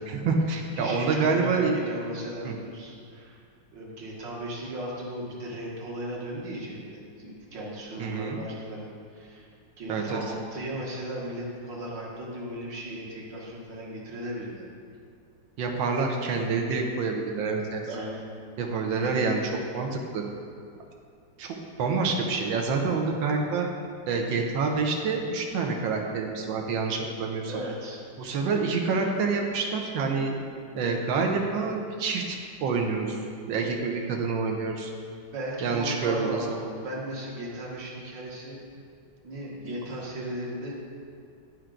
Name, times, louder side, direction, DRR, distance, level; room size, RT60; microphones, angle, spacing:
voice 1, 0.0-1.7 2.4-2.5 8.0-8.4 9.9-10.2 15.6-17.8 18.6-20.2 21.4-23.7 24.1-27.5 28.2-30.3 30.7-33.2 33.5-34.9 35.6-36.5, right 4 dB, 90° right, 2 dB, 1.5 m, -27 dB
voice 2, 0.8-3.4 3.7-9.5 9.8-14.7 17.8-18.3 27.5-28.0 35.3-38.6 39.2-40.7, right 1 dB, 75° right, -3 dB, 2.0 m, -36 dB
11.5 x 4.5 x 3.8 m, 2.3 s
omnidirectional pair, 2.1 m